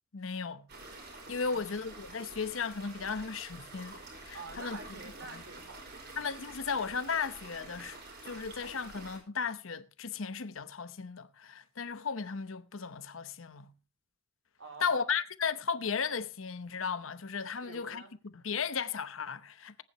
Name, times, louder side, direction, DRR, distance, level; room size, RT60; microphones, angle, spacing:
voice 1, 0.1-0.7 1.3-3.9 4.2-4.8 5.3-5.4 6.2-8.0 8.2-13.7 14.8-18.0 18.3-19.8, left 5 dB, 85° left, 0.9 m, -35 dB
sound 1, 0.7-9.2, right 2 dB, 55° right, 5.3 m, -48 dB
voice 2, 1.5-1.8 4.3-6.2 14.6-15.2 17.6-18.1, right 3 dB, 75° right, 4.3 m, -48 dB
19.5 x 9.6 x 3.1 m
head